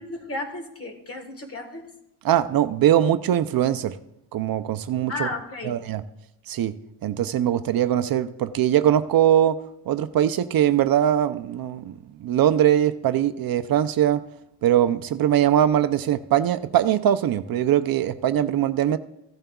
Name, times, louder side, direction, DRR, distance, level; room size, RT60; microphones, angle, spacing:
voice 1, 0.0-1.8 5.1-5.7, left 2 dB, 35° left, 1.4 m, -33 dB
voice 2, 2.2-4.0 4.3-5.3 5.6-6.0 6.5-6.7 7.0-9.6 9.9-14.2 14.6-19.0, right 11 dB, 60° right, 0.5 m, -21 dB
15.5 x 12.5 x 2.3 m
cardioid pair, 145°, 41 cm